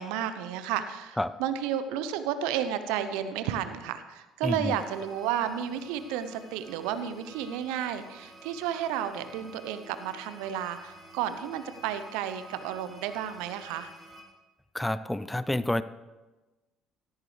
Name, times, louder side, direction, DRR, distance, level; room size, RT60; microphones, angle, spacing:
voice 1, 0.0-13.9, right 9 dB, 70° right, 11 dB, 0.8 m, -32 dB
voice 2, 4.4-4.8 14.7-15.8, left 1 dB, 10° left, 15 dB, 0.5 m, -28 dB
sound 1, 4.6-14.2, right 1 dB, 20° right, 4.3 m, -51 dB
16.5 x 13.5 x 3.4 m, 1.2 s
hypercardioid pair, 55°, 0 cm